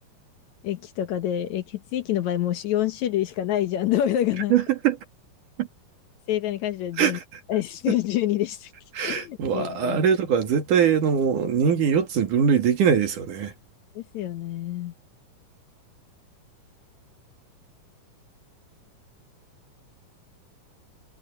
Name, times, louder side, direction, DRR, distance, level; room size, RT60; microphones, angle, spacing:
voice 1, 0.6-4.5 6.3-7.2 7.5-8.7 9.0-10.0 14.0-14.9, left 12 dB, 70° left, 2.1 m, -27 dB
voice 2, 4.5-5.0 5.6-5.7 7.0-7.2 7.9-8.0 8.9-13.5, right 7 dB, 70° right, 3.6 m, -22 dB
omnidirectional pair, 3.8 m